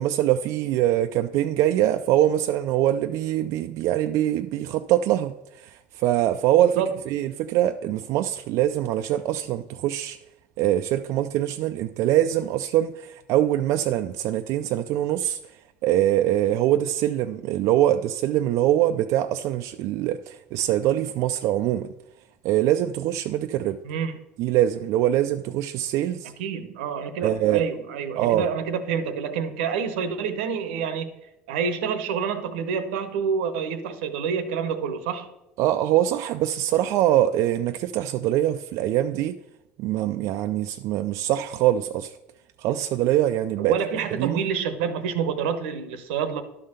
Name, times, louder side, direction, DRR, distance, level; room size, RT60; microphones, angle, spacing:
voice 1, 0.0-10.2 10.6-15.4 15.8-21.9 22.4-23.8 24.4-26.3 27.2-27.7 28.2-28.5 35.6-39.4 39.8-42.1 42.6-43.7 44.2-44.4, right 12 dB, 65° right, 0.4 m, -23 dB
voice 2, 23.8-24.2 26.4-31.1 31.5-35.3 43.6-46.4, right 6 dB, 85° right, 0.9 m, -27 dB
11.5 x 3.8 x 6.6 m
supercardioid pair, 95°, 6 cm